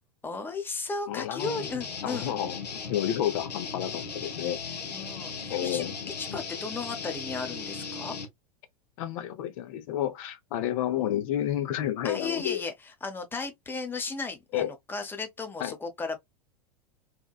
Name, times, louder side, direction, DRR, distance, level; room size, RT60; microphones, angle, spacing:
voice 1, 0.2-2.3 4.9-5.8 6.2-8.2 12.0-12.7 13.0-16.2, left 4 dB, 10° left, 0.6 m, -35 dB
voice 2, 1.1-1.7 2.0-2.6 2.9-4.6 5.5-5.9 9.0-12.6 14.5-14.7 15.6-15.8, left 11 dB, 55° left, 0.5 m, -30 dB
sound 1, 1.4-8.3, left 5 dB, 90° left, 0.7 m, -37 dB
2.9 x 2.1 x 2.3 m
hypercardioid pair, 100°, 20 cm